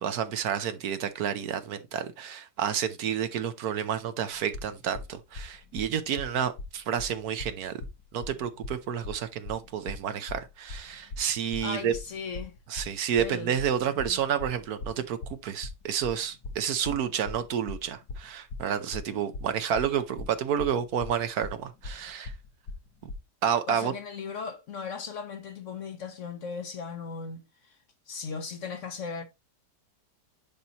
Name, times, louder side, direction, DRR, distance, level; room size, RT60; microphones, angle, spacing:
voice 1, 0.0-7.8 8.1-11.9 12.7-22.3 23.4-23.9, right 8 dB, 70° right, 1.2 m, -30 dB
sound 1, 4.3-23.1, left 3 dB, 75° left, 1.8 m, -40 dB
voice 2, 11.6-12.6 13.2-13.5 14.1-14.2 23.7-27.4 28.1-29.2, left 5 dB, 55° left, 1.1 m, -37 dB
10.5 x 4.2 x 2.9 m
omnidirectional pair, 1.8 m